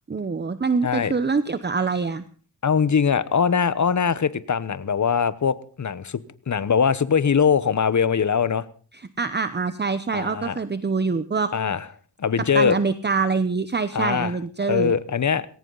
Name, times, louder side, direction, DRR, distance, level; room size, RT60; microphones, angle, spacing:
voice 1, 0.1-2.2 8.9-11.5 12.5-14.9, right 4 dB, 25° right, 0.9 m, -25 dB
voice 2, 2.6-8.7 10.1-10.6 11.5-11.8 12.2-12.8 13.9-14.3 14.7-15.5, left 6 dB, 45° left, 1.1 m, -22 dB
20.0 x 18.0 x 4.0 m
cardioid pair, 95°, 42 cm